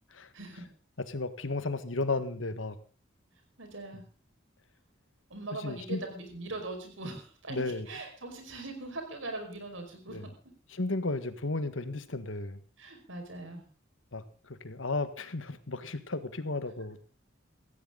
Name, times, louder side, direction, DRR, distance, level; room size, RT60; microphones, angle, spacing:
voice 1, 0.3-0.7 3.6-4.0 5.3-10.3 12.8-13.6, right 2 dB, 80° right, 4 dB, 5.2 m, -41 dB
voice 2, 1.1-2.8 5.6-6.0 7.5-7.9 10.1-10.2 10.7-12.6 14.1-14.2 14.6-17.0, left 2 dB, 80° left, 12 dB, 1.6 m, -33 dB
17.5 x 15.0 x 3.9 m, 0.38 s
head